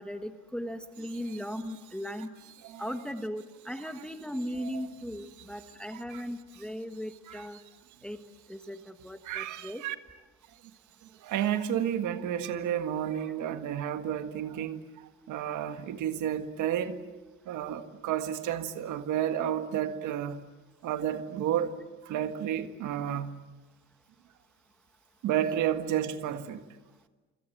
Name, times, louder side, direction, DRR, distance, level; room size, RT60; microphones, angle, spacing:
voice 1, 0.0-2.3 2.8-7.6 8.0-8.2 8.5-9.8, equal, 5° left, 1.3 m, -37 dB
voice 2, 9.2-10.0 11.2-14.8 15.3-17.0 17.5-20.4 20.8-21.7 22.0-23.3 25.2-26.6, right 10 dB, 75° right, 1.8 m, -31 dB
28.0 x 26.5 x 7.8 m
cardioid pair, 155°, 30 cm